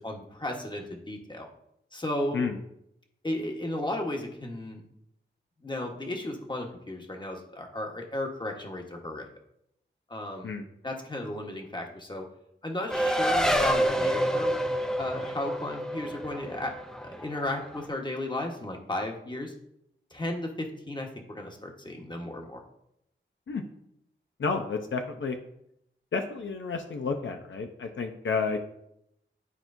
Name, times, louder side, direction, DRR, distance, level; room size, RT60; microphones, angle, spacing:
voice 1, 0.0-1.5 1.9-2.5 3.2-4.8 5.6-9.3 10.1-10.6 10.8-12.3 12.6-14.6 15.0-19.5 20.1-22.6, left 1 dB, 20° left, 1 dB, 1.2 m, -34 dB
Race car auto racing, 12.9-17.8, equal, 5° left, 0.6 m, -27 dB
voice 2, 24.4-25.4 26.1-28.6, left 4 dB, 75° left, 5 dB, 0.6 m, -31 dB
11.0 x 4.4 x 2.6 m, 0.76 s
wide cardioid pair, 90°, 20 cm